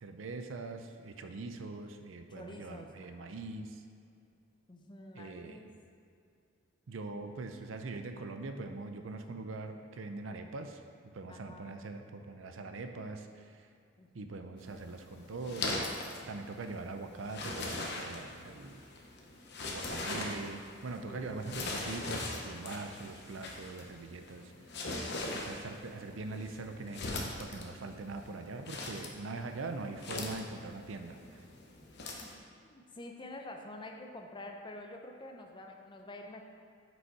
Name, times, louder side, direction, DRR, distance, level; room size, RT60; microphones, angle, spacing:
voice 1, 0.0-3.8 5.1-5.6 6.9-10.8 11.1-13.7 14.1-15.9 16.3-18.8 19.7-24.5 25.3-31.4, right 3 dB, 75° right, 6 dB, 0.5 m, -42 dB
voice 2, 2.3-3.3 4.7-5.7 11.3-11.7 14.0-14.5 21.1-21.4 32.2-32.3 32.6-36.4, left 1 dB, 25° left, 3 dB, 0.6 m, -48 dB
sound 1, 14.6-32.4, left 2 dB, 60° left, 0.9 m, -41 dB
6.3 x 5.3 x 4.7 m, 2.5 s
head